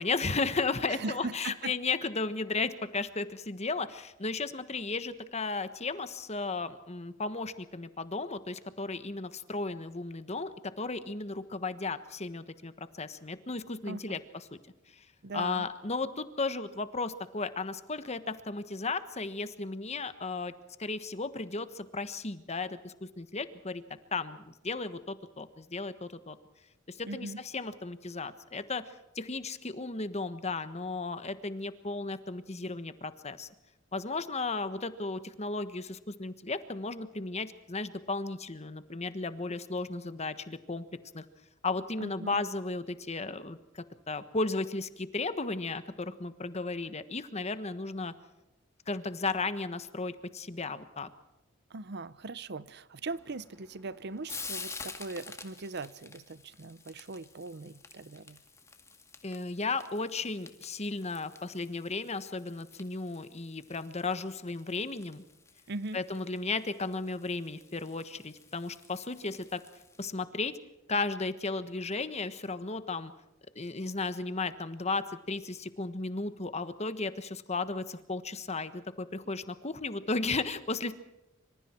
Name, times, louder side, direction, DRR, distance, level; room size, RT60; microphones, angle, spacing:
voice 1, 0.0-14.2 14.9-15.0 15.3-20.5 20.8-23.8 24.1-26.4 26.9-33.5 33.9-40.8 41.1-41.2 41.6-48.1 48.9-51.1 59.2-65.2 65.9-69.6 70.0-70.5 70.9-73.1 73.5-80.9, left 3 dB, 35° left, 12 dB, 1.3 m, -35 dB
voice 2, 0.9-1.7 13.9-14.2 15.2-15.7 27.0-27.4 42.0-42.4 51.7-58.4 65.7-66.0, right 3 dB, 55° right, 17 dB, 0.8 m, -40 dB
Frying (food), 53.1-70.0, left 4 dB, 15° left, 2.1 m, -49 dB
26.0 x 25.5 x 4.5 m, 0.95 s
head